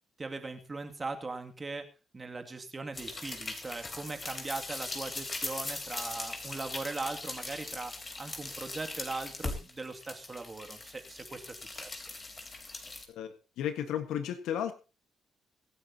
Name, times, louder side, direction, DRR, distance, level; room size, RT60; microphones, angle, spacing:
voice 1, 0.2-12.1, right 3 dB, 25° right, 5 dB, 2.4 m, -40 dB
sound 1, 2.9-13.0, left 3 dB, 30° left, 3.8 m, -40 dB
voice 2, 13.1-14.7, left 9 dB, 85° left, 9 dB, 1.5 m, -34 dB
24.5 x 9.6 x 2.9 m, 0.31 s
cardioid pair, 90°, 0 cm